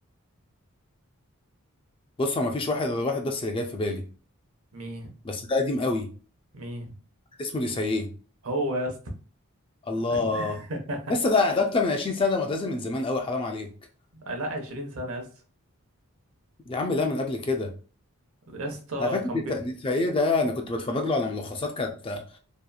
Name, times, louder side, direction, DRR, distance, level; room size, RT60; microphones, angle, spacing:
voice 1, 2.2-4.0 5.2-6.1 7.4-8.1 9.9-10.6 11.1-13.7 16.7-17.7 19.0-19.1 19.5-22.2, left 3 dB, 25° left, 3 dB, 0.3 m, -26 dB
voice 2, 4.7-5.1 6.5-6.9 8.4-9.0 10.1-11.1 14.2-15.3 18.5-19.4, right 1 dB, 75° right, 3 dB, 0.7 m, -33 dB
2.8 x 2.3 x 2.3 m, 0.37 s
head